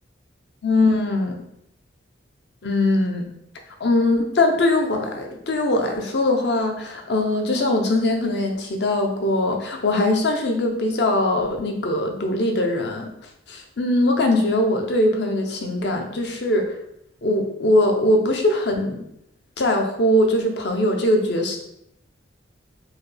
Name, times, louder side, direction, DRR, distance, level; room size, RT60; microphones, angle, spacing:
voice 1, 0.6-1.4 2.6-3.3 3.8-13.1 13.5-16.7 17.2-19.0 19.6-21.6, left 1 dB, 60° left, 3 dB, 0.6 m, -21 dB
4.6 x 2.3 x 3.2 m, 0.77 s
head